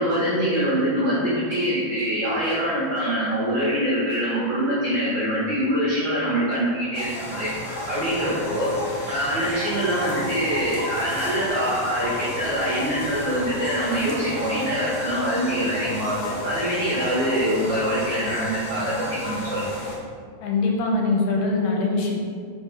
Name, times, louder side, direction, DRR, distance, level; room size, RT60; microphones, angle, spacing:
voice 1, 0.0-8.7 9.1-19.7, equal, 90° right, -8 dB, 1.0 m, -24 dB
sound 1, 6.9-20.0, left 1 dB, 65° left, 1.7 m, -33 dB
voice 2, 20.4-22.1, left 3 dB, 80° left, 0 dB, 2.3 m, -22 dB
4.7 x 4.0 x 5.1 m, 2.1 s
omnidirectional pair, 3.9 m